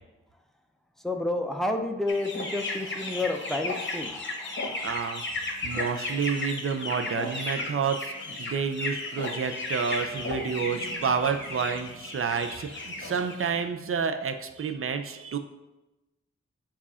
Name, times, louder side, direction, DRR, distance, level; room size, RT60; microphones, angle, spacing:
voice 1, 1.0-4.8, left 2 dB, ahead, 4 dB, 0.5 m, -30 dB
sound 1, 2.1-13.5, left 2 dB, 40° left, 0.9 m, -34 dB
voice 2, 4.8-5.2 5.6-15.4, right 6 dB, 50° right, 7 dB, 0.5 m, -29 dB
7.3 x 2.4 x 5.5 m, 1.0 s
wide cardioid pair, 105°, 29 cm